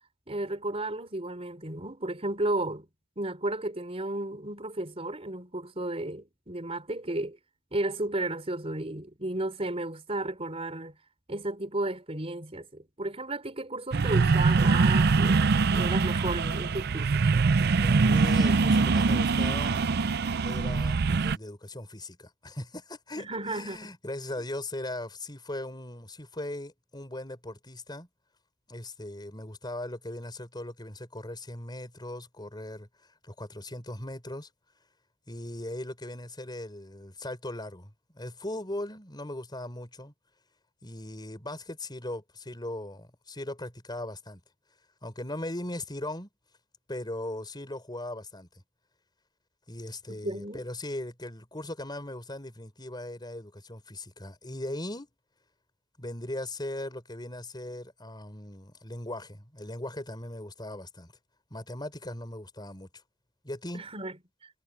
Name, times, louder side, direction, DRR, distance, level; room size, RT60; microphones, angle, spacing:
voice 1, 0.3-2.9 3.2-7.4 7.7-11.0 11.3-15.4 15.7-17.3 23.2-23.9 50.2-50.6 63.7-64.2, right 2 dB, 30° right, 4.1 m, -33 dB
sound 1, 13.9-21.4, right 4 dB, 50° right, 0.5 m, -23 dB
voice 2, 17.8-19.8 20.4-28.1 28.7-34.5 35.3-40.1 40.8-44.4 45.0-46.3 46.9-48.6 49.7-55.1 56.0-61.1 61.5-62.9 63.4-63.8, left 1 dB, 20° left, 5.2 m, -39 dB
head